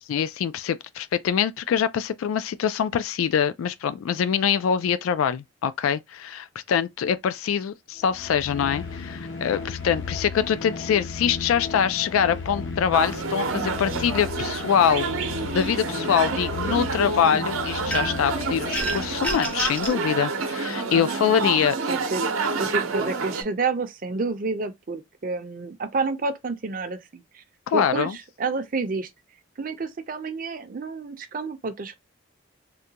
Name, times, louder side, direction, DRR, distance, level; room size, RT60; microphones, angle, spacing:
voice 1, 0.1-15.1 15.5-21.8 27.7-28.2, left 8 dB, 85° left, 0.3 m, -24 dB
sound 1, 8.0-19.7, left 4 dB, 65° left, 0.7 m, -35 dB
sound 2, 12.9-23.4, right 4 dB, 85° right, 0.7 m, -28 dB
voice 2, 16.3-16.8 20.9-22.2 22.6-27.4 27.7-29.1 29.6-32.0, right 3 dB, 40° right, 0.5 m, -30 dB
sound 3, 17.9-18.3 18.7-20.0, right 2 dB, 5° left, 0.5 m, -29 dB
3.7 x 2.2 x 2.8 m
head